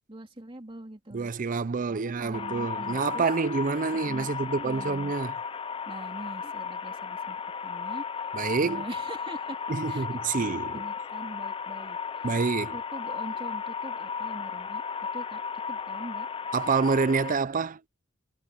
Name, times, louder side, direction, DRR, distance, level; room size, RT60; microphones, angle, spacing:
voice 1, 0.1-1.3 1.9-3.3 3.9-4.3 4.6-5.1 5.9-8.0 8.6-12.3 12.7-14.8 15.1-15.4 15.7-16.3, right 1 dB, 25° right, 2.8 m, -43 dB
voice 2, 1.1-5.3 8.3-8.8 9.7-10.7 12.2-12.7 16.5-17.8, right 4 dB, 40° right, 0.5 m, -27 dB
sound 1, 2.3-17.3, left 6 dB, 25° left, 0.3 m, -35 dB
head